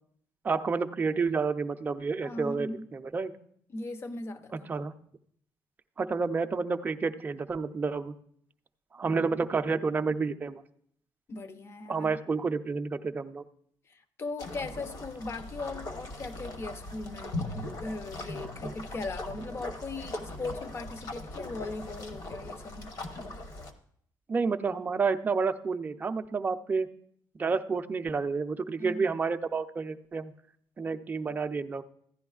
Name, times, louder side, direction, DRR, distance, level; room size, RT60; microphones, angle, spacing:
voice 1, 0.4-3.3 4.7-4.9 6.0-8.1 8.9-10.6 11.9-13.4 24.3-26.9 27.4-30.3 30.8-31.8, right 4 dB, 20° right, 0.5 m, -30 dB
voice 2, 2.2-2.9 3.7-4.7 11.3-12.2 13.9-22.9 28.8-29.1, left 3 dB, 30° left, 0.6 m, -39 dB
sound 1, 14.4-23.7, left 2 dB, 50° left, 1.0 m, -40 dB
15.0 x 10.5 x 2.3 m
cardioid pair, 140°, 8 cm